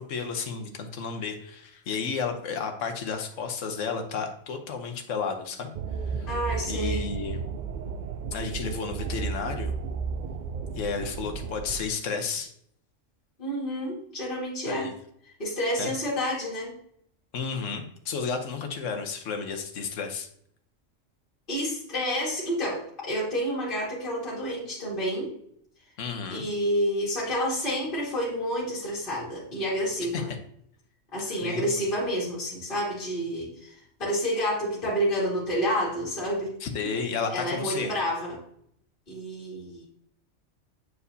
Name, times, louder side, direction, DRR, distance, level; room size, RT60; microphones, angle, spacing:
voice 1, 0.0-5.7 6.0-6.3 6.7-7.4 8.3-9.7 10.7-12.5 14.7-14.9 15.8-15.9 17.3-20.3 26.0-26.4 30.1-30.2 31.4-31.7 36.6-37.9, left 5 dB, 75° left, 5 dB, 1.2 m, -32 dB
sound 1, 5.7-11.8, right 5 dB, 70° right, 0.4 m, -33 dB
voice 2, 6.3-7.1 13.4-14.9 15.4-16.8 21.5-25.3 26.3-30.3 31.1-36.5 36.8-36.9 37.3-38.4 39.1-39.9, equal, 40° left, -7 dB, 2.3 m, -29 dB
8.1 x 4.6 x 2.7 m, 0.67 s
omnidirectional pair, 1.3 m